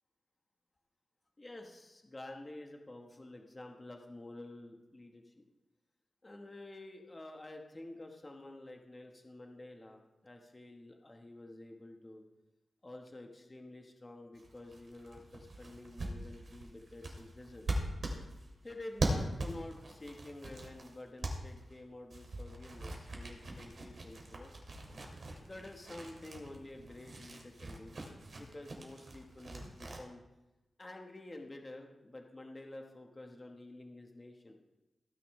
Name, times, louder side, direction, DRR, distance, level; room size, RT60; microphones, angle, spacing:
voice 1, 1.4-5.3 6.2-12.2 12.8-17.7 18.6-24.5 25.4-28.0 28.3-30.2 30.8-34.5, left 2 dB, 20° left, 2 dB, 1.2 m, -49 dB
sound 1, 14.3-21.8 22.1-30.0, right 1 dB, 50° right, 2.5 m, -41 dB
17.0 x 9.9 x 3.2 m, 0.98 s
wide cardioid pair, 145°, 0 cm